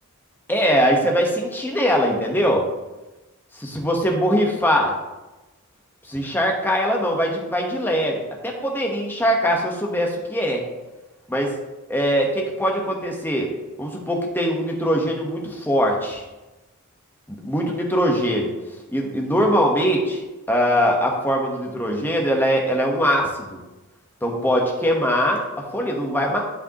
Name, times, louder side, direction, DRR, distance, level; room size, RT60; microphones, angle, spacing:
voice 1, 0.5-2.7 3.5-5.0 6.1-10.6 11.3-11.5 11.9-13.5 13.8-16.2 17.3-18.5 18.9-23.6 24.2-26.4, equal, 10° left, 0 dB, 1.2 m, -22 dB
11.0 x 5.0 x 3.0 m, 1.1 s
head